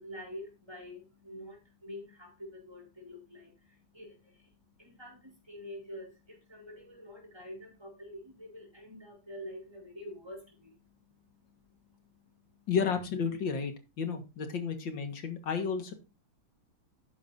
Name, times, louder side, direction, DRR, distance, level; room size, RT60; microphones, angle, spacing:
voice 1, 0.0-12.7, left 1 dB, 10° right, 0 dB, 4.4 m, -47 dB
voice 2, 12.7-13.7 14.0-15.9, left 6 dB, 65° left, 7 dB, 2.3 m, -32 dB
12.0 x 9.3 x 2.7 m, 0.29 s
omnidirectional pair, 2.2 m